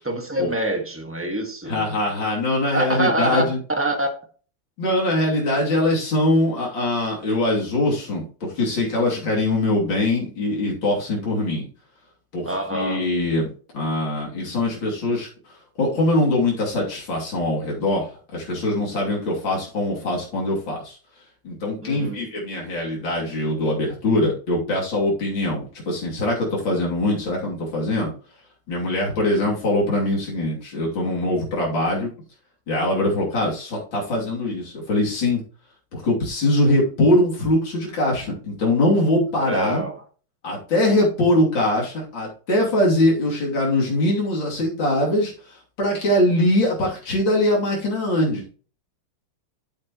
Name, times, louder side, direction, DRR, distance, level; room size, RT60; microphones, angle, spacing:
voice 1, 0.0-1.9 2.7-3.4 3.8-4.1 12.4-13.0 21.8-22.2 39.4-40.0, right 1 dB, 5° right, 3 dB, 1.6 m, -25 dB
voice 2, 1.7-3.6 4.8-11.7 12.3-15.3 15.8-21.0 21.4-28.1 28.7-32.1 32.7-35.4 35.9-39.8 40.4-45.3 45.8-48.5, left 1 dB, 70° left, -4 dB, 3.7 m, -22 dB
9.8 x 8.4 x 3.1 m, 0.41 s
omnidirectional pair, 2.2 m